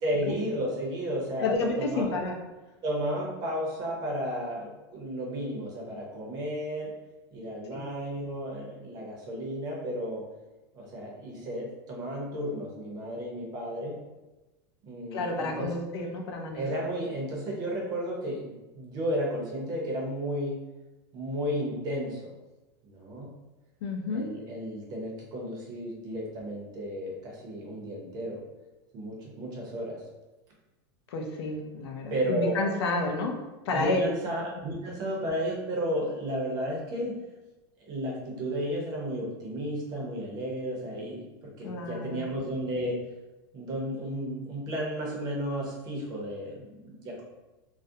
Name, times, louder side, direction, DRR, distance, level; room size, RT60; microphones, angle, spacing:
voice 1, 0.0-2.1 2.8-6.9 7.3-10.2 10.7-14.0 14.8-15.7 16.5-20.6 21.1-22.4 22.8-23.3 24.1-28.4 28.9-30.0 32.1-32.8 33.7-37.1 37.9-42.9 43.5-47.2, equal, 30° right, -2 dB, 0.6 m, -33 dB
voice 2, 1.4-2.3 7.7-7.8 15.1-16.6 23.8-24.3 31.1-33.4 33.6-34.1 41.6-42.3, left 3 dB, 85° left, 2 dB, 0.5 m, -30 dB
2.4 x 2.0 x 2.6 m, 1.1 s
supercardioid pair, 160°, 13 cm